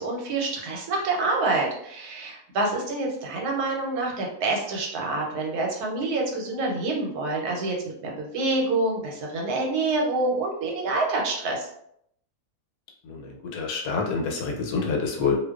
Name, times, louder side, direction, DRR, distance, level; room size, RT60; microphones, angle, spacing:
voice 1, 0.0-11.7, right 2 dB, 85° right, -1 dB, 1.2 m, -27 dB
voice 2, 13.0-15.4, left 5 dB, 80° left, 0 dB, 1.1 m, -27 dB
2.5 x 2.2 x 2.3 m, 0.72 s
omnidirectional pair, 1.6 m